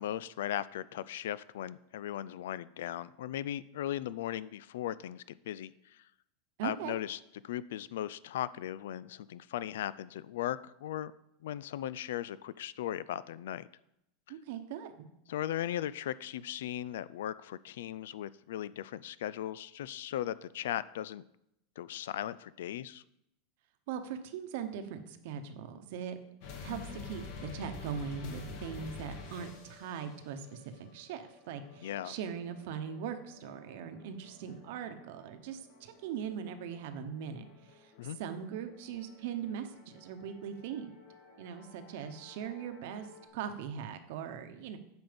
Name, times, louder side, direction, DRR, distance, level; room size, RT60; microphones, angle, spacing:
voice 1, 0.0-5.7 6.6-7.2 7.4-11.1 11.4-13.7 15.3-21.2 21.8-23.0 31.8-32.2 38.0-38.2, left 12 dB, 85° left, 18 dB, 0.4 m, -37 dB
voice 2, 6.6-7.0 14.3-15.1 23.9-26.2 26.6-37.4 37.7-40.9 41.4-43.1 43.3-44.8, right 8 dB, 55° right, 8 dB, 1.0 m, -40 dB
sound 1, 26.4-43.3, left 4 dB, 50° left, 1.6 m, -50 dB
9.4 x 6.1 x 5.2 m, 0.82 s
supercardioid pair, 175°, 0 cm